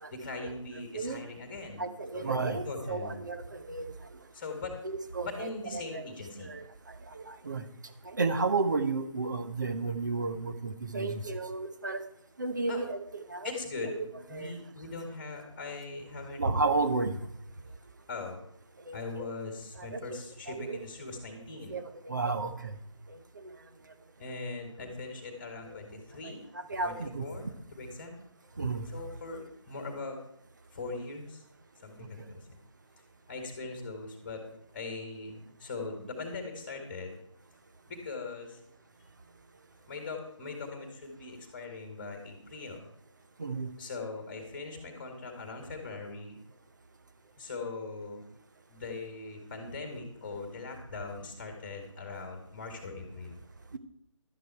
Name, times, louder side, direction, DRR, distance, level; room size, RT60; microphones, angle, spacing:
voice 1, 0.1-1.8 2.1-3.2 4.3-4.8 5.2-6.5 12.7-12.8 13.4-16.4 18.1-18.4 18.9-21.8 24.2-26.4 26.8-28.1 28.9-30.2 30.7-31.4 31.8-32.4 33.3-34.4 34.7-37.1 37.9-38.6 39.9-42.9 43.8-46.4 47.4-48.2 48.7-53.4, left 3 dB, 20° left, 3 dB, 1.9 m, -40 dB
voice 2, 1.8-3.9 4.8-6.1 6.4-7.6 8.0-12.0 12.4-13.5 13.9-14.0 14.3-14.5 16.4-17.2 18.9-19.3 19.8-20.2 20.5-20.8 21.7-22.8 23.4-23.5 25.7-25.8 26.2-26.3 26.7-27.3 28.6-28.8 43.4-43.7 53.7-53.8, right 3 dB, 35° right, 9 dB, 1.0 m, -32 dB
12.0 x 9.3 x 4.5 m, 0.70 s
figure-of-eight pair, 160°, 17 cm